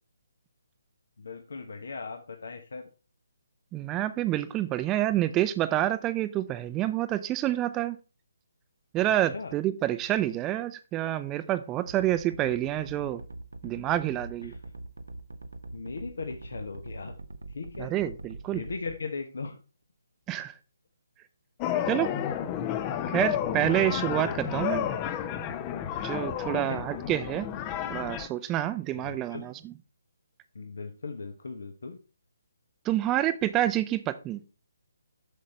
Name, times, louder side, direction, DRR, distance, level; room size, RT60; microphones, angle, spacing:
voice 1, 1.2-2.9 9.0-9.5 14.4-14.6 15.7-17.1 17.5-17.9 18.5-19.6 23.6-23.9 26.5-26.8 29.0-29.5 30.5-32.0, left 4 dB, 65° left, 5 dB, 1.1 m, -38 dB
voice 2, 3.7-8.0 8.9-13.2 13.6-14.5 17.8-18.6 20.3-20.5 21.9-22.1 23.1-24.9 26.0-27.5 27.9-29.7 32.8-34.4, right 13 dB, 20° right, 12 dB, 0.7 m, -28 dB
sound 1, 11.9-18.9, right 2 dB, 75° right, 0.9 m, -42 dB
sound 2, 21.6-28.3, left 10 dB, 25° left, 0.7 m, -31 dB
8.1 x 6.4 x 4.3 m, 0.33 s
figure-of-eight pair, 140°, 0 cm